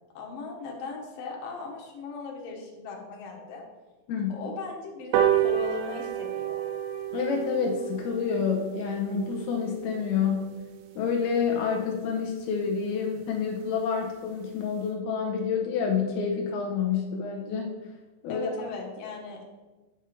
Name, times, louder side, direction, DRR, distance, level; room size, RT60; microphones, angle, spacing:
voice 1, 0.1-3.6 4.3-6.6 18.3-19.4, left 4 dB, 60° left, -1 dB, 2.7 m, -38 dB
sound 1, 5.1-11.9 12.3-12.4 12.7-12.8 13.1-13.2 13.5-13.6 13.9-14.2 14.6-14.7, right 10 dB, 80° right, 3.1 m, -31 dB
voice 2, 7.1-10.5 11.0-17.7 18.2-18.5, left 6 dB, 85° left, 0 dB, 2.2 m, -28 dB
9.6 x 6.2 x 4.4 m, 1.2 s
omnidirectional pair, 5.6 m